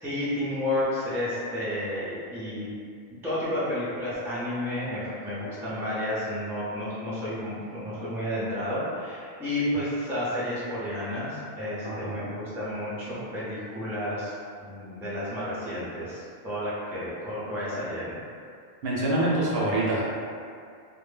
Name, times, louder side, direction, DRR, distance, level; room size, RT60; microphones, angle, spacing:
voice 1, 0.0-2.7 3.2-14.3 14.6-18.2, left 1 dB, 5° right, -10 dB, 0.4 m, -31 dB
voice 2, 11.8-12.2 18.8-20.0, right 1 dB, 70° right, -5 dB, 0.8 m, -25 dB
2.1 x 2.1 x 3.1 m, 2.3 s
omnidirectional pair, 1.1 m